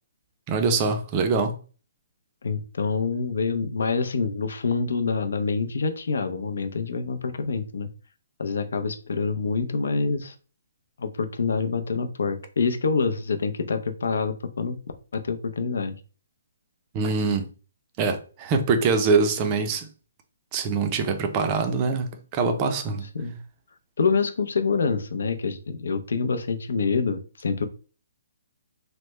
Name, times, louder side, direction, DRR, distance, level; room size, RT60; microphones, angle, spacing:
voice 1, 0.5-1.5 16.9-17.5 18.0-19.9 20.5-23.0, right 4 dB, 20° right, 0.4 m, -24 dB
voice 2, 2.4-7.9 8.4-10.3 11.0-14.8 15.1-15.9 23.1-23.4 24.0-27.7, left 4 dB, 75° left, 0.5 m, -26 dB
3.2 x 2.1 x 3.1 m
hypercardioid pair, 170°, 0 cm